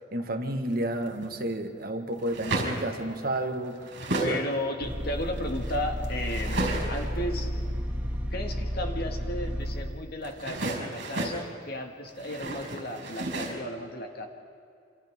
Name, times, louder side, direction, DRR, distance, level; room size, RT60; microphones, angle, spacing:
voice 1, 0.1-4.4, right 1 dB, 50° right, 5 dB, 1.5 m, -31 dB
sound 1, 0.7-1.3 2.1-2.9 3.4-4.4 4.8-7.2 10.2-11.4 12.1-13.5, right 2 dB, 65° right, 5.3 m, -33 dB
voice 2, 4.2-7.5 8.3-14.3, left 1 dB, 50° left, 3 dB, 1.8 m, -34 dB
sound 2, 4.8-9.8, equal, 10° right, 1.8 m, -32 dB
28.0 x 26.5 x 3.6 m, 2.5 s
head